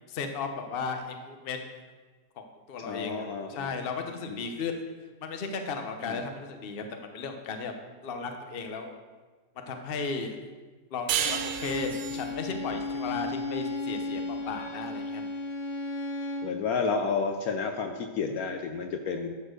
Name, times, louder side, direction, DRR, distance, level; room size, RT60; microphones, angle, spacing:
voice 1, 0.1-1.7 2.4-2.5 2.7-4.8 5.2-7.7 8.0-8.9 9.7-10.4 10.9-15.2, left 4 dB, 45° left, 5 dB, 0.9 m, -35 dB
voice 2, 2.8-3.7 4.3-4.4 6.1-6.2 16.4-19.3, left 5 dB, 65° left, 5 dB, 1.0 m, -31 dB
sound 1, 11.1-14.3, right 9 dB, 75° right, 1.2 m, -33 dB
Bowed string instrument, 11.2-16.6, left 2 dB, 90° left, 1.7 m, -34 dB
11.5 x 4.4 x 6.5 m, 1.4 s
omnidirectional pair, 1.8 m